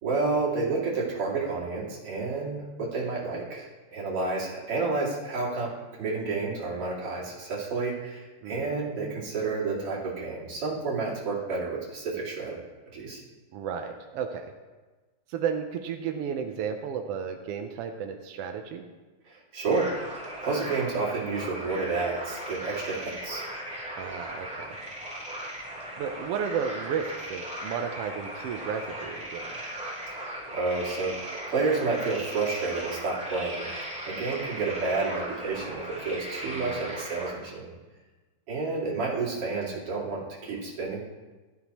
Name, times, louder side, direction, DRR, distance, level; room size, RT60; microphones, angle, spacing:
voice 1, 0.0-12.6 12.9-13.2 19.2-20.1 20.4-23.5 30.1-33.7 34.0-37.7 38.5-41.0, right 3 dB, 50° right, -6 dB, 3.3 m, -30 dB
voice 2, 13.5-14.5 15.3-18.9 24.0-24.8 26.0-29.8 36.4-36.9, right 7 dB, 75° right, 4 dB, 1.4 m, -33 dB
sound 1, 19.7-37.3, right 1 dB, ahead, 3.1 m, -38 dB
15.5 x 13.0 x 3.0 m, 1.3 s
omnidirectional pair, 3.4 m